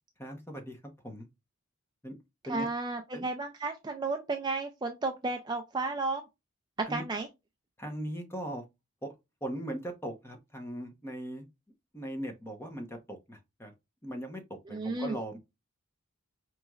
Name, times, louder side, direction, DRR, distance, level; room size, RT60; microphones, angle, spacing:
voice 1, 0.2-1.3 2.0-2.2 2.5-2.7 3.1-3.3 6.9-7.0 7.8-8.6 9.0-9.1 9.4-11.4 11.9-13.7 14.0-15.4, right 1 dB, 10° left, 0.8 m, -39 dB
voice 2, 2.5-6.2 6.9-7.3 14.7-15.2, right 3 dB, 20° right, 0.3 m, -33 dB
5.0 x 3.0 x 2.3 m
head